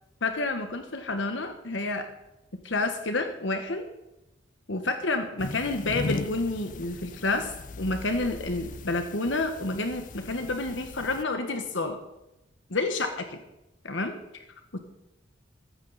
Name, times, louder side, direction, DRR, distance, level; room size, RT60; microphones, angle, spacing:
voice 1, 0.2-2.1 2.6-3.9 4.7-12.0 12.7-13.4 13.8-14.1 14.7-14.8, left 2 dB, 70° left, 6 dB, 1.3 m, -29 dB
sound 1, 5.4-11.2, left 3 dB, 40° left, 0.4 m, -38 dB
15.0 x 14.5 x 4.1 m, 0.91 s
head